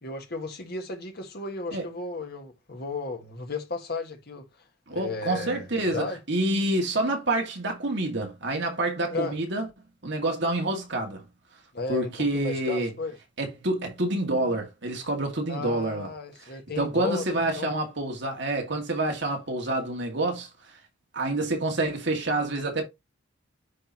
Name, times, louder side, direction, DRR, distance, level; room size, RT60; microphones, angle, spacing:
voice 1, 0.0-4.5 4.9-6.2 9.1-9.4 11.7-13.1 15.5-17.7, left 3 dB, 50° left, 1.6 m, -34 dB
voice 2, 4.9-9.7 10.0-11.2 11.9-12.9 13.4-16.1 16.8-20.5 21.1-22.8, right 2 dB, 60° right, 2.1 m, -27 dB
9.9 x 3.9 x 2.9 m
head